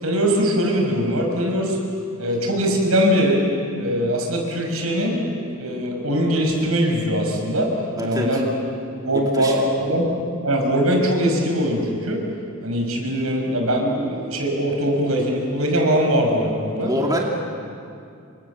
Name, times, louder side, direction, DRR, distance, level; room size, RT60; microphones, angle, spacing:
voice 1, 0.0-1.8 2.2-3.5 3.8-5.2 5.6-7.7 8.0-8.5 9.0-10.1 10.4-12.2 12.6-16.9, equal, 80° right, 2 dB, 5.8 m, -21 dB
voice 2, 8.0-8.4 9.1-9.6 16.8-17.3, equal, 15° right, -1 dB, 2.7 m, -25 dB
29.5 x 25.5 x 7.3 m, 2.4 s
head